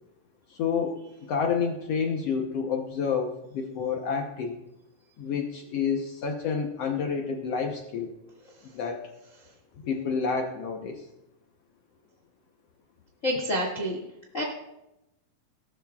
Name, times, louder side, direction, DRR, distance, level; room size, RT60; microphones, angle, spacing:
voice 1, 0.5-1.0 1.3-4.6 5.2-8.1 8.7-9.0 9.8-11.1, left 6 dB, 75° left, 2 dB, 1.4 m, -29 dB
voice 2, 13.2-14.0 14.3-14.4, equal, 30° left, -1 dB, 1.5 m, -27 dB
19.5 x 12.5 x 2.4 m, 0.89 s
omnidirectional pair, 4.1 m